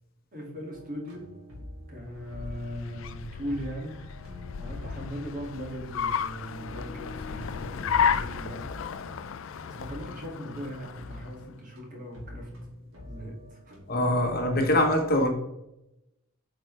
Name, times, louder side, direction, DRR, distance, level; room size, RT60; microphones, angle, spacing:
voice 1, 0.3-1.2 1.9-4.0 4.6-8.7 9.7-12.5 13.0-13.8, equal, 40° right, 2.3 m, -39 dB
sound 1, 0.7-13.8, left 1 dB, 70° right, 2.4 m, -46 dB
Car, 2.0-11.5, left 7 dB, 60° left, 0.4 m, -33 dB
voice 2, 13.9-15.3, left 1 dB, 45° left, 1.1 m, -23 dB
8.3 x 4.8 x 3.3 m
head